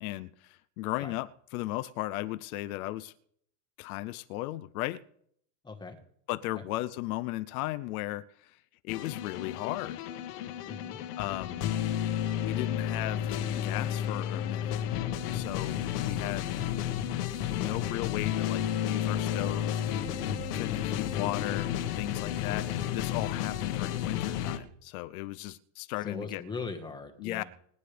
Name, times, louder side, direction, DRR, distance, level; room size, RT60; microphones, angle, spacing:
voice 1, 0.0-3.1 3.8-5.0 6.3-8.6 8.8-10.0 11.2-11.7 12.3-14.8 15.3-16.5 17.5-19.8 20.5-21.7 22.0-26.4 27.2-27.4, left 17 dB, 70° left, 0.7 m, -36 dB
voice 2, 5.6-6.0 6.5-6.7 10.6-11.0 11.5-11.7 17.6-17.8 26.0-27.4, left 4 dB, 10° left, 1.4 m, -41 dB
sound 1, 8.9-24.6, left 10 dB, 85° left, 1.7 m, -32 dB
28.5 x 9.8 x 3.4 m
supercardioid pair, 160°, 46 cm